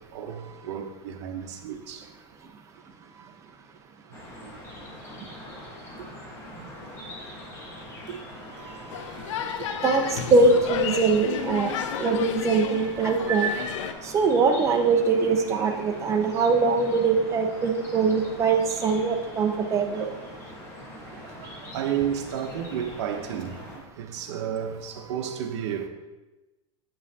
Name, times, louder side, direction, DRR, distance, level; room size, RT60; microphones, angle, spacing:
voice 1, 0.1-2.1 3.1-3.3 4.1-4.5 5.2-5.3 6.5-7.6 8.1-9.3 9.6-9.7 12.5-13.1 19.9-20.1 20.9-25.9, right 9 dB, 65° right, 0.8 m, -34 dB
sound 1, 4.1-23.8, left 1 dB, 15° left, 1.3 m, -43 dB
sound 2, 8.9-13.9, left 8 dB, 80° left, 0.5 m, -31 dB
voice 2, 9.8-11.7 12.0-13.6 14.0-20.1, right 4 dB, 20° right, 0.6 m, -22 dB
8.4 x 5.5 x 2.8 m
supercardioid pair, 155°, 15 cm